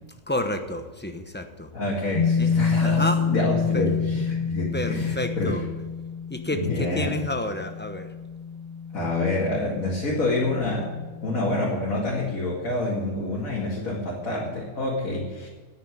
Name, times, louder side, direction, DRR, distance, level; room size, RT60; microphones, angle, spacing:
voice 1, 0.3-1.7 2.4-2.5 2.8-3.2 3.7-3.9 4.7-5.6 6.3-8.1, left 1 dB, 10° left, 7 dB, 0.7 m, -30 dB
voice 2, 1.7-5.6 6.5-7.1 8.9-10.9 11.2-15.5, left 2 dB, 65° left, -5 dB, 2.7 m, -27 dB
sound 1, 2.1-11.6, left 6 dB, 30° left, 1.5 m, -28 dB
9.6 x 9.5 x 9.1 m, 1.3 s
omnidirectional pair, 1.6 m